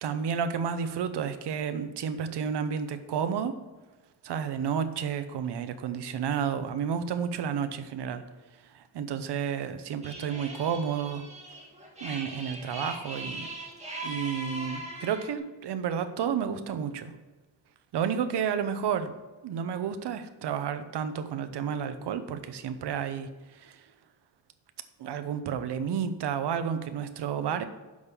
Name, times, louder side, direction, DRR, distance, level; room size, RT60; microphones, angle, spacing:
voice 1, 0.0-3.5 4.2-8.2 8.6-11.2 12.0-13.5 14.0-17.1 17.9-19.1 19.4-23.9 25.0-27.6, right 7 dB, 60° right, 10 dB, 0.9 m, -31 dB
sound 1, 10.0-15.4, right 1 dB, 15° right, 2.1 m, -40 dB
6.4 x 5.4 x 6.8 m, 1.2 s
cardioid pair, 105°, 46 cm